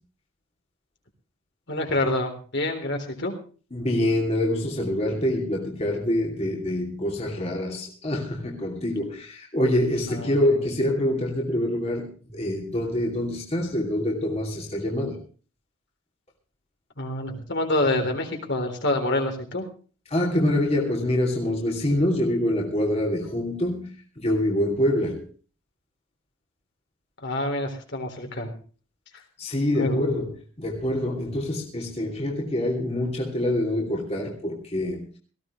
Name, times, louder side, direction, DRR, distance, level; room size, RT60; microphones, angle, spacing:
voice 1, 1.7-3.3 17.0-19.7 27.2-28.5 29.8-30.0, left 1 dB, 55° left, 3.8 m, -26 dB
voice 2, 3.7-15.2 20.1-25.3 29.4-35.2, left 1 dB, 30° left, 2.9 m, -25 dB
18.5 x 16.0 x 3.2 m
head